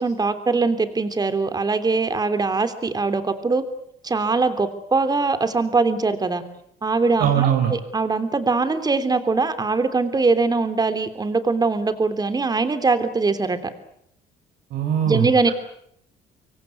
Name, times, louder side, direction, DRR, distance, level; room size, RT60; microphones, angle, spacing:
voice 1, 0.0-3.6 4.0-6.4 6.8-13.6 15.0-15.5, right 4 dB, 25° right, 10 dB, 3.3 m, -22 dB
voice 2, 7.2-7.7 14.7-15.5, right 9 dB, 75° right, 3 dB, 4.3 m, -21 dB
26.0 x 23.0 x 8.3 m, 0.72 s
cardioid pair, 110°, 17 cm